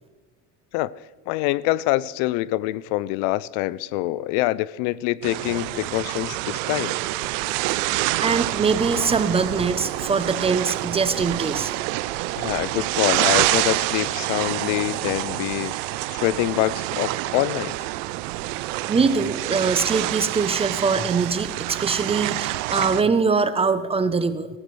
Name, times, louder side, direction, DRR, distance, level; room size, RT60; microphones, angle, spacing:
voice 1, 1.3-7.0 12.4-15.7 16.1-17.7, left 17 dB, 70° left, 0.5 m, -25 dB
sound 1, 5.2-23.0, right 18 dB, 80° right, 0.6 m, -27 dB
voice 2, 8.2-11.7 18.9-24.5, right 5 dB, 15° right, 0.6 m, -22 dB
16.5 x 14.5 x 3.2 m
supercardioid pair, 120°, 37 cm